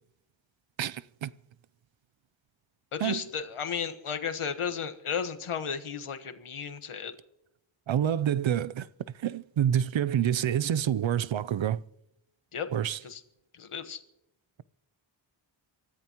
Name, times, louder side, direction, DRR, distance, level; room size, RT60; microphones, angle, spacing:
voice 1, 0.8-1.3 3.0-3.2 7.9-8.9 9.2-11.8 12.7-13.0, right 10 dB, 65° right, 0.6 m, -27 dB
voice 2, 2.9-7.1 12.5-12.7 13.0-13.2 13.5-14.0, left 7 dB, 80° left, 1.4 m, -34 dB
25.0 x 14.0 x 3.0 m
wide cardioid pair, 65°, 49 cm